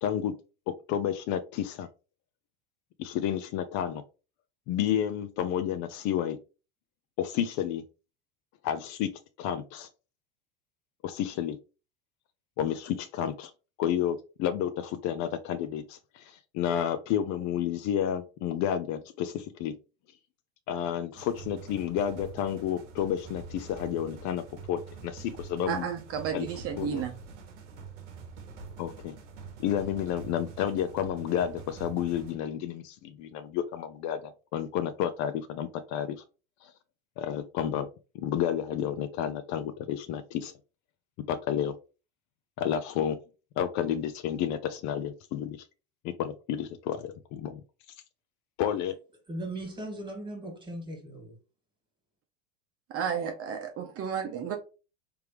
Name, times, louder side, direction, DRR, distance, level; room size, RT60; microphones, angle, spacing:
voice 1, 0.0-0.3 0.9-1.9 3.0-4.0 4.7-6.4 7.2-7.8 8.6-9.1 9.4-9.9 11.0-11.6 12.6-13.5 13.8-19.8 20.7-25.9 26.3-26.5 26.8-27.0 28.8-29.1 29.6-36.2 36.6-36.7 37.2-37.9 38.1-40.5 41.3-41.8 42.6-43.2 43.6-45.7 46.0-47.6 48.6-48.9, left 10 dB, 50° left, 0.5 m, -31 dB
sound 1, 21.2-32.3, right 5 dB, 85° right, 1.0 m, -45 dB
voice 2, 25.7-27.2 52.9-54.6, right 7 dB, 40° right, 0.8 m, -32 dB
voice 3, 49.3-51.4, right 1 dB, 15° right, 1.8 m, -38 dB
3.4 x 3.4 x 3.0 m
hypercardioid pair, 90°, 36 cm